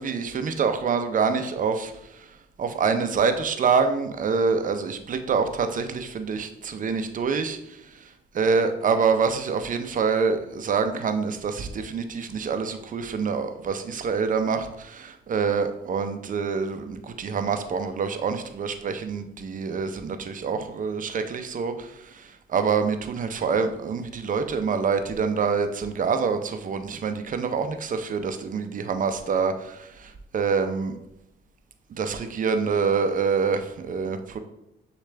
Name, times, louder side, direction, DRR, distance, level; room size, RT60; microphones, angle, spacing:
voice 1, 0.0-2.2 2.6-8.0 8.3-31.0 31.9-34.4, right 5 dB, 40° right, 8 dB, 0.6 m, -26 dB
6.5 x 2.4 x 3.3 m, 0.84 s
cardioid pair, 90°, 20 cm